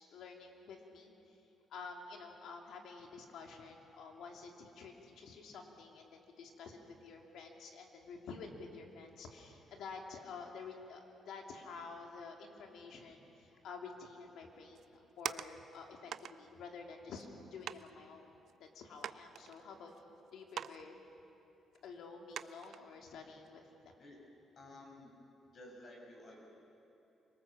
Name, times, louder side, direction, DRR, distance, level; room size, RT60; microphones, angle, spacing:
voice 1, 0.0-1.4 1.7-18.3 18.6-20.9 21.8-23.9, left 4 dB, 75° left, 2 dB, 2.9 m, -50 dB
sound 1, 14.8-15.8 16.1-16.4 17.2-17.3 17.7-17.9 18.5-18.6 19.0-20.0 20.5-20.8 21.1-21.2 21.7-21.8 22.3-22.8 23.3-23.5, right 9 dB, 65° right, 0.5 m, -43 dB
voice 2, 24.5-25.1 25.5-26.4, left 1 dB, 50° left, -1 dB, 6.3 m, -53 dB
26.0 x 19.0 x 7.4 m, 2.9 s
cardioid pair, 90°, 0 cm